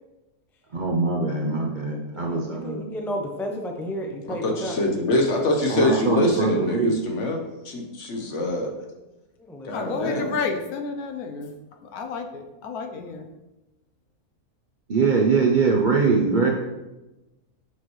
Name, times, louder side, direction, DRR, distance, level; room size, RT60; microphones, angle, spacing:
voice 1, 0.7-2.8 5.7-7.0 14.9-16.5, right 4 dB, 45° right, -1 dB, 0.7 m, -22 dB
voice 2, 2.2-4.8 9.4-9.7 10.1-10.2, equal, 5° left, 2 dB, 0.3 m, -32 dB
voice 3, 4.2-7.4 7.6-8.7 9.7-10.3, left 1 dB, 55° left, 2 dB, 1.3 m, -24 dB
voice 4, 9.7-11.6 11.8-13.3, left 5 dB, 85° left, 5 dB, 1.3 m, -31 dB
7.3 x 5.8 x 3.2 m, 1.0 s
omnidirectional pair, 1.5 m